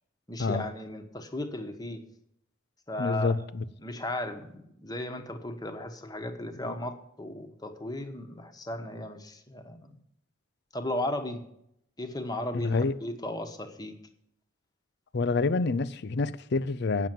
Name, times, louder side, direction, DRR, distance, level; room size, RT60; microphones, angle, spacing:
voice 1, 0.3-2.0 2.9-3.3 3.8-10.0 10.7-11.4 12.0-14.0, left 1 dB, 20° left, 1.2 m, -36 dB
voice 2, 3.0-3.6 6.6-6.7 12.5-12.9 15.1-17.1, left 3 dB, 55° left, 0.5 m, -27 dB
9.2 x 7.2 x 8.9 m
head